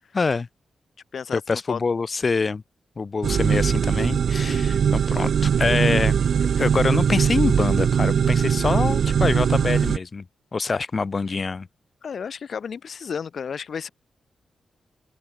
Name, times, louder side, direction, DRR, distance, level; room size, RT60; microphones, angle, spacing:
voice 1, 0.1-0.5 1.3-2.6 3.0-6.2 6.6-10.2 10.5-11.7, left 4 dB, 45° left, 2.0 m, -25 dB
voice 2, 1.1-1.8 4.4-4.8 12.0-13.9, left 6 dB, 65° left, 1.6 m, -33 dB
sound 1, 3.2-10.0, right 7 dB, 70° right, 0.5 m, -21 dB
open air
cardioid pair, 60°, 0 cm